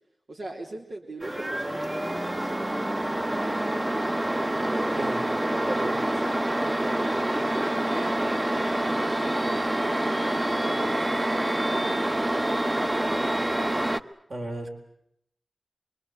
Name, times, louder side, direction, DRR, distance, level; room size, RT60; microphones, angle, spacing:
voice 1, 0.3-2.5 3.4-4.1 4.6-5.1 5.4-6.6 6.8-10.5 10.9-11.6 11.9-12.2, right 2 dB, 90° right, 0 dB, 3.5 m, -41 dB
sound 1, 1.2-14.0, right 1 dB, 25° right, 0.9 m, -27 dB
voice 2, 5.0-6.1 14.3-14.7, right 1 dB, 65° right, 2 dB, 4.2 m, -35 dB
25.5 x 23.0 x 8.1 m, 0.75 s
wide cardioid pair, 70°, 0 cm